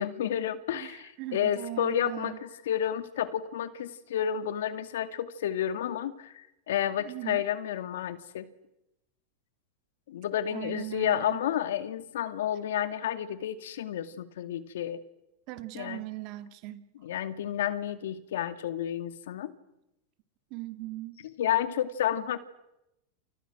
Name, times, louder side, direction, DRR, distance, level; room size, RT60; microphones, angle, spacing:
voice 1, 0.0-8.5 10.1-15.0 15.7-16.0 17.0-19.5 21.4-22.4, left 10 dB, 80° left, 11 dB, 2.4 m, -31 dB
voice 2, 0.7-2.4 7.0-7.4 10.5-11.4 15.5-16.8 20.5-21.2, right 18 dB, 55° right, 10 dB, 2.5 m, -39 dB
29.5 x 29.5 x 6.3 m, 0.87 s
hypercardioid pair, 115°, 0 cm